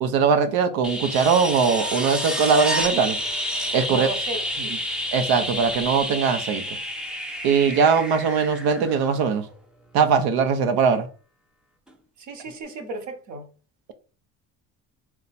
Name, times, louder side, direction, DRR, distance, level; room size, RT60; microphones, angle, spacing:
voice 1, 0.0-3.2 3.7-4.1 5.1-6.6 7.4-9.5 9.9-11.1, right 6 dB, 70° right, 0.8 m, -20 dB
sound 1, 0.8-9.5 11.9-12.0, equal, ahead, 0.5 m, -29 dB
voice 2, 3.9-4.8 12.2-13.5, right 3 dB, 50° right, 1.1 m, -34 dB
4.2 x 2.3 x 4.1 m
cardioid pair, 115°, 38 cm